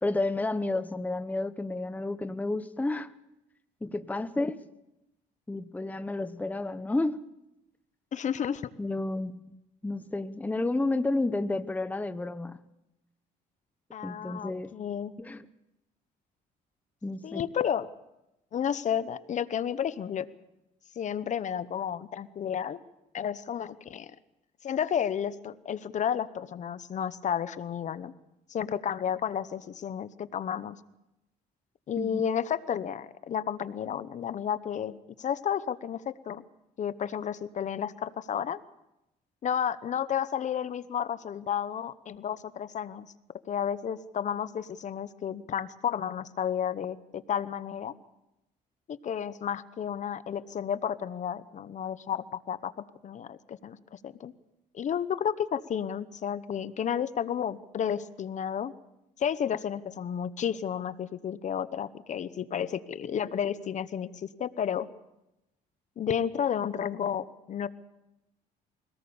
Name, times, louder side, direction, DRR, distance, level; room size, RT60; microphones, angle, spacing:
voice 1, 0.0-3.1 3.8-4.6 5.5-7.2 8.8-9.6 9.8-12.7 14.0-14.7 15.2-15.5 17.0-17.5 32.0-32.2, left 2 dB, 10° left, 11 dB, 0.8 m, -31 dB
voice 2, 8.1-8.7 13.9-15.1 17.2-17.9 18.5-20.3 21.0-22.8 23.1-24.1 24.6-28.1 28.5-30.8 31.9-36.4 36.8-38.6 39.4-43.1 43.5-47.9 48.9-52.7 53.0-54.3 54.7-58.7 59.2-64.9 66.0-67.7, left 8 dB, 45° left, 14 dB, 0.9 m, -32 dB
23.5 x 18.5 x 7.0 m, 0.91 s
cardioid pair, 110°, 17 cm